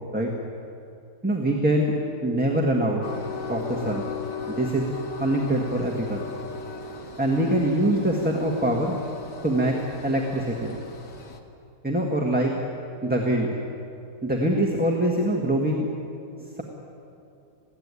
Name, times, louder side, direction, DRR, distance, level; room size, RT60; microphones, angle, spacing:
voice 1, 1.2-1.9 2.2-3.0 3.5-4.1 4.5-4.9 5.2-6.3 7.2-8.9 9.4-10.8 11.8-12.5 13.0-13.6 14.2-15.9 16.4-16.6, right 1 dB, 5° right, -1 dB, 1.6 m, -24 dB
Train, 3.0-11.4, left 5 dB, 85° left, 2.2 m, -37 dB
21.0 x 16.0 x 9.7 m, 2.6 s
omnidirectional pair, 1.8 m